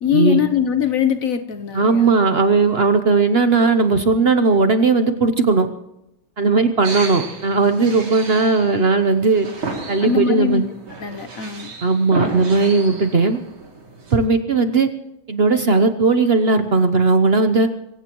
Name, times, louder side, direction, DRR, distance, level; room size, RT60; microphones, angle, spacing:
voice 1, 0.0-2.1 10.0-10.6 11.0-11.7, left 8 dB, 55° left, 10 dB, 0.9 m, -21 dB
voice 2, 1.7-5.7 6.4-9.5 9.9-10.6 11.8-13.4 14.1-14.9 15.3-17.7, right 3 dB, 55° right, 8 dB, 0.6 m, -17 dB
sound 1, 6.8-14.2, right 3 dB, 85° right, 3.6 m, -32 dB
24.0 x 15.5 x 3.0 m, 0.87 s
omnidirectional pair, 2.2 m